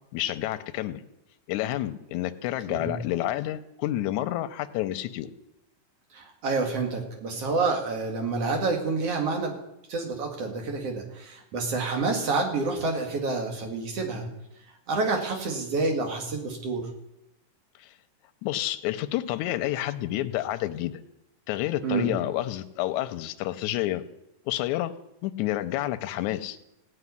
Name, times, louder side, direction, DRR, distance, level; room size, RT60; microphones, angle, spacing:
voice 1, 0.1-1.0 1.5-5.3 18.4-20.9 21.5-24.0 24.5-24.9 25.2-26.6, left 14 dB, 80° left, 9 dB, 2.0 m, -29 dB
voice 2, 2.7-3.0 6.1-9.6 9.9-14.3 14.9-16.9 21.8-22.1, right 3 dB, 50° right, 3 dB, 2.9 m, -28 dB
16.5 x 5.6 x 9.7 m, 0.87 s
omnidirectional pair, 3.6 m